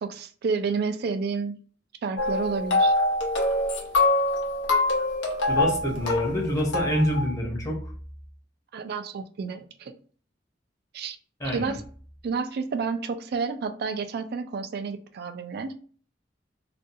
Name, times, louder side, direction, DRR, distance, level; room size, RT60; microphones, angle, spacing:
voice 1, 0.0-1.6 2.0-2.9 8.7-9.9 10.9-11.2 11.5-11.8 12.2-15.7, right 5 dB, 60° right, 9 dB, 0.3 m, -30 dB
sound 1, 2.2-7.3, left 2 dB, 90° left, 0.7 m, -25 dB
voice 2, 5.5-7.9 11.4-11.8, equal, 20° left, -1 dB, 0.7 m, -26 dB
2.5 x 2.3 x 2.6 m, 0.43 s
head